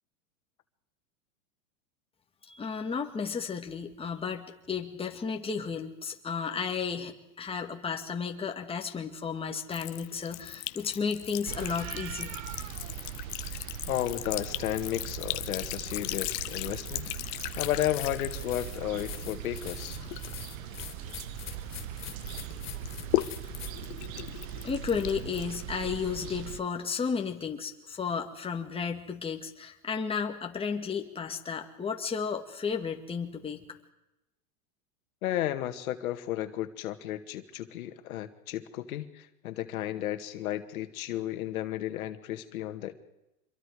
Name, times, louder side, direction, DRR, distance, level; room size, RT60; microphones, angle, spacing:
voice 1, 2.5-12.4 24.6-33.6, left 6 dB, 15° left, 3 dB, 2.1 m, -33 dB
Sink (filling or washing) / Trickle dribble, 9.7-21.8 22.2-26.1, left 21 dB, 50° left, 1.1 m, -38 dB
sound 1, 11.4-26.6, right 12 dB, 65° right, 1.2 m, -40 dB
voice 2, 13.5-20.0 35.2-42.9, left 13 dB, 80° left, 8 dB, 2.1 m, -33 dB
sound 2, 17.6-23.8, left 9 dB, 30° left, 4.3 m, -44 dB
26.5 x 22.5 x 4.9 m, 0.91 s
supercardioid pair, 130°, 42 cm